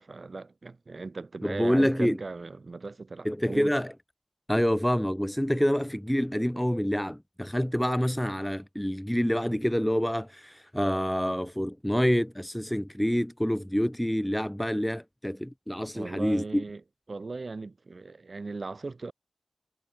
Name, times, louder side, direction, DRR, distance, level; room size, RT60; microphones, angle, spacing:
voice 1, 0.0-3.8 15.9-16.8 17.1-19.1, right 3 dB, 50° right, 6.1 m, -38 dB
voice 2, 1.4-2.2 3.2-3.9 4.5-16.6, equal, 5° left, 0.8 m, -27 dB
wide cardioid pair, 110°, 0 cm